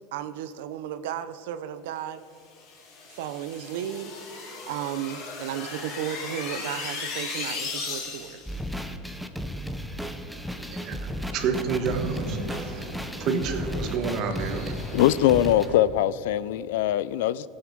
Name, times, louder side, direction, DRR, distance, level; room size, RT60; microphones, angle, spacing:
voice 1, 0.1-2.2 3.1-4.1 4.4-8.4, right 10 dB, 80° right, 0.6 m, -34 dB
sound 1, 2.6-8.5, left 4 dB, 40° left, 2.8 m, -36 dB
sound 2, 7.7-15.8, right 1 dB, 20° right, 2.8 m, -43 dB
sound 3, 8.5-15.7, equal, ahead, 0.6 m, -34 dB
voice 2, 10.7-12.9 13.2-14.7, right 5 dB, 40° right, 1.4 m, -29 dB
voice 3, 14.9-17.5, left 13 dB, 85° left, 0.4 m, -22 dB
18.5 x 8.0 x 5.2 m
supercardioid pair, 165°, 0 cm